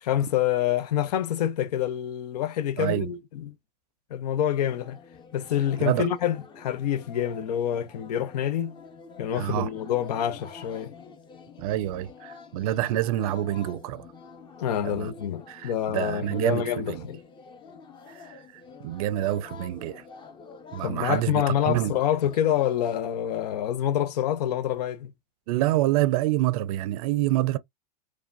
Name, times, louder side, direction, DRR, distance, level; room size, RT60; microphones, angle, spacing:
voice 1, 0.0-3.5 4.1-5.0 5.3-8.8 9.2-10.9 14.6-17.2 20.8-25.1, left 10 dB, 70° left, 0.6 m, -27 dB
voice 2, 2.8-3.1 5.8-6.1 9.3-9.7 11.6-14.1 14.8-15.1 15.5-17.1 18.1-20.0 20.7-21.9 25.5-27.6, right 14 dB, 60° right, 0.5 m, -27 dB
sound 1, 4.6-23.0, left 5 dB, 20° left, 0.7 m, -47 dB
4.7 x 2.3 x 2.4 m
hypercardioid pair, 110°, 21 cm